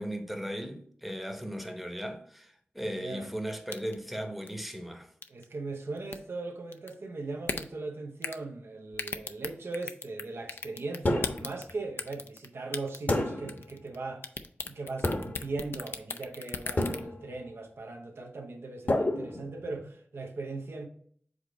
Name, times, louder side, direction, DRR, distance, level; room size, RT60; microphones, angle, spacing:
voice 1, 0.0-5.1, equal, ahead, 0.8 m, -37 dB
voice 2, 2.8-3.3 5.3-14.3 14.6-20.9, right 3 dB, 80° right, 0.8 m, -39 dB
sound 1, 3.7-4.0 4.5-4.6 5.2-5.4 6.0-6.2 6.7-6.9 7.4-7.6 8.2-8.4 8.9-10.2 10.5-11.7 12.0-12.5 12.7-13.2 13.5-13.9 14.2-17.0, left 4 dB, 70° left, 0.4 m, -35 dB
sound 2, 11.0-11.6 13.1-13.7 15.0-15.6 16.8-17.4 18.9-19.9, left 1 dB, 45° left, 1.0 m, -30 dB
5.0 x 3.9 x 4.9 m
wide cardioid pair, 70°, 4 cm